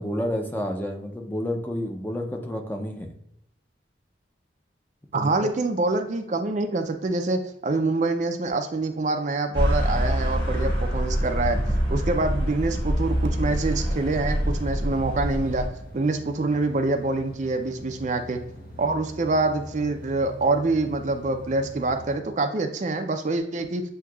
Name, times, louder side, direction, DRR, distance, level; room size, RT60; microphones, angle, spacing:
voice 1, 0.0-3.1 5.1-5.5, left 1 dB, 10° left, 3 dB, 0.5 m, -30 dB
voice 2, 5.1-11.6 11.9-15.7 15.9-18.4 18.8-23.8, right 2 dB, 40° right, 6 dB, 0.5 m, -25 dB
sound 1, 9.5-15.7, equal, 25° left, 1.5 m, -25 dB
sound 2, 13.4-22.1, equal, 55° left, 0.8 m, -43 dB
7.6 x 2.8 x 2.3 m, 0.76 s
head